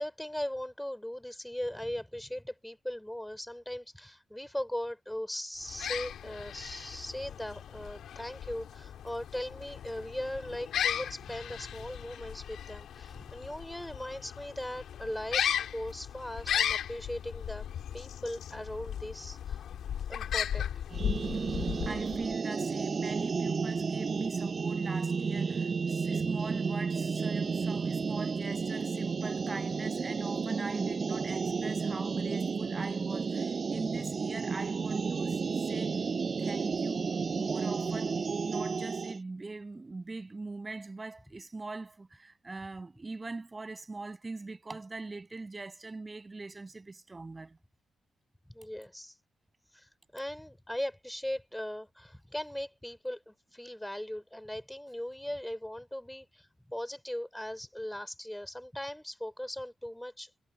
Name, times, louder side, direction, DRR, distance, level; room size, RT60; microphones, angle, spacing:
voice 1, 0.0-17.7 17.9-19.6 20.1-20.7 48.5-49.1 49.7-60.3, left 1 dB, 5° left, 4.6 m, -39 dB
sound 1, 5.6-22.4, left 9 dB, 80° left, 3.0 m, -36 dB
sound 2, 20.9-39.2, right 5 dB, 50° right, 0.3 m, -32 dB
voice 2, 21.8-35.4 35.7-36.1 36.4-37.0 37.3-38.2 38.4-47.6, right 3 dB, 30° right, 6.5 m, -41 dB
supercardioid pair, 60°, 0 cm